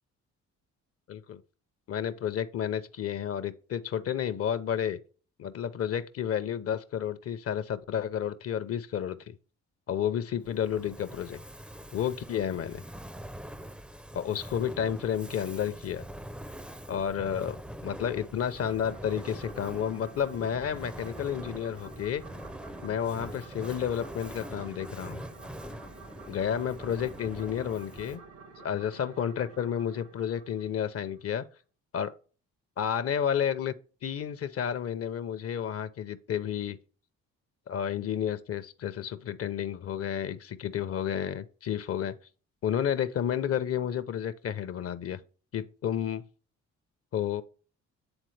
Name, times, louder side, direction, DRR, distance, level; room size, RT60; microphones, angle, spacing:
voice 1, 1.1-1.4 1.9-5.0 5.4-9.3 9.9-11.4 11.9-12.8 14.1-16.0 16.9-22.2 22.8-25.2 26.3-28.2 28.6-31.4 31.9-32.1 32.8-33.7 34.0-36.8 37.7-42.1 42.6-45.2 45.5-46.2 47.1-47.4, left 9 dB, 50° left, 0.6 m, -31 dB
Fire, 10.4-28.4, equal, 5° right, 0.4 m, -44 dB
sound 1, 18.5-31.4, right 4 dB, 90° right, 1.3 m, -51 dB
8.9 x 3.7 x 3.2 m
cardioid pair, 90°, 30 cm